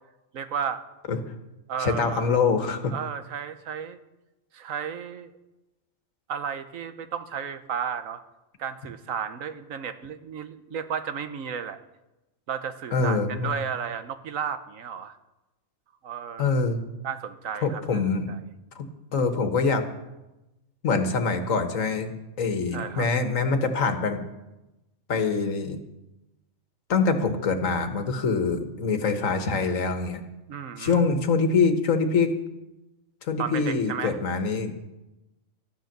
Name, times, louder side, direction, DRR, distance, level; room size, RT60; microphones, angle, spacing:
voice 1, 0.3-0.8 1.7-2.3 2.9-4.0 4.5-5.3 6.3-8.2 8.6-11.8 12.5-15.1 16.0-16.6 17.0-18.0 18.3-18.4 22.7-23.1 30.5-31.0 33.4-34.2, right 7 dB, 85° right, 10 dB, 1.3 m, -33 dB
voice 2, 1.8-2.9 12.9-13.5 16.4-16.8 17.6-18.3 18.7-19.8 20.8-22.1 22.4-24.2 25.1-25.8 26.9-30.2 30.8-32.3 33.2-34.7, left 4 dB, 80° left, 7 dB, 1.7 m, -24 dB
13.5 x 10.5 x 6.7 m, 1.0 s
omnidirectional pair, 1.4 m